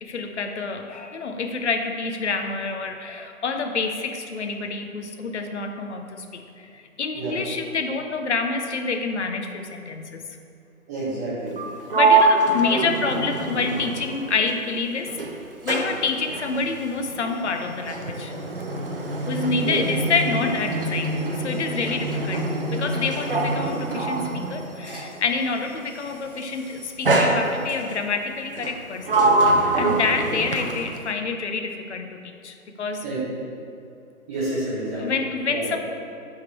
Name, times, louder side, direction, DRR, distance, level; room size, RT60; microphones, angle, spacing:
voice 1, 0.0-10.2 11.9-15.2 15.6-18.3 19.3-29.2 29.8-33.1 35.0-35.8, left 4 dB, 50° left, 5 dB, 0.6 m, -27 dB
voice 2, 10.9-11.5 19.6-19.8 33.0-33.2 34.3-35.0 35.5-35.7, right 2 dB, 10° right, -10 dB, 1.1 m, -29 dB
Sliding door, 11.5-14.8 15.1-25.2 26.1-26.4 27.1-28.0 28.6-31.1, right 2 dB, 40° right, 0.4 m, -24 dB
8.3 x 3.7 x 4.3 m, 2.5 s
figure-of-eight pair, 155°, 44 cm